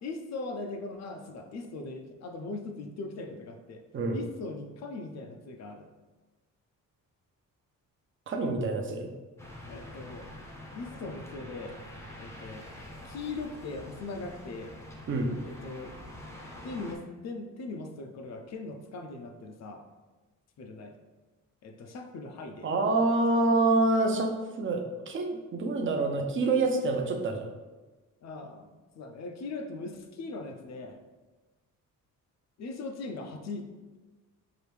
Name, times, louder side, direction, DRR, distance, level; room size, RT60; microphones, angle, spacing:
voice 1, 0.0-3.8 4.1-5.9 9.7-10.3 10.8-11.8 12.2-12.7 13.0-14.7 15.4-16.0 16.6-19.8 20.6-21.0 21.6-22.7 28.2-31.0 32.6-34.0, left 3 dB, 55° left, 5 dB, 0.5 m, -40 dB
voice 2, 8.3-9.1 15.1-15.3 22.6-27.5, right 2 dB, 35° right, 3 dB, 0.6 m, -27 dB
sound 1, 9.4-16.9, left 1 dB, 10° left, 0.6 m, -46 dB
4.8 x 2.6 x 3.3 m, 1.2 s
cardioid pair, 130°, 33 cm